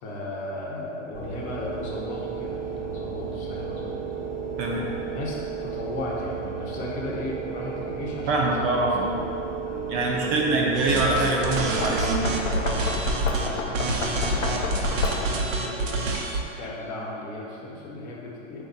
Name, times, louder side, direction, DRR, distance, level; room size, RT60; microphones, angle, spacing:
voice 1, 0.0-4.0 4.6-9.2 9.6-10.8 12.5-12.9 13.3-18.6, left 1 dB, 60° left, -3 dB, 1.0 m, -36 dB
sound 1, 1.1-12.8, right 6 dB, 5° left, 0.6 m, -33 dB
voice 2, 4.6-4.9 8.3-9.2 9.9-12.4, right 2 dB, 35° right, -2 dB, 0.4 m, -24 dB
sound 2, 10.8-13.5 13.7-16.5, right 3 dB, 80° right, 0.7 m, -28 dB
Knock, 11.4-15.5, left 4 dB, 90° left, 0.6 m, -29 dB
3.5 x 2.6 x 4.0 m, 2.7 s
hypercardioid pair, 115°, 38 cm